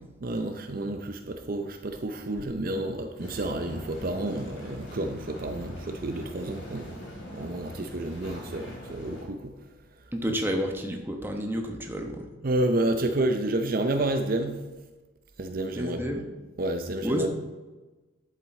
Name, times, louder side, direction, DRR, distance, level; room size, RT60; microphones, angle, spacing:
voice 1, 0.2-7.0 7.3-9.5 12.4-14.6 15.4-16.0 16.6-17.3, right 1 dB, 45° right, 6 dB, 0.6 m, -30 dB
sound 1, 3.2-9.2, equal, 85° left, 3.1 m, -42 dB
voice 2, 10.1-12.3 15.7-16.2 17.0-17.3, equal, 10° right, 2 dB, 1.0 m, -30 dB
11.0 x 7.5 x 4.2 m, 1.2 s
head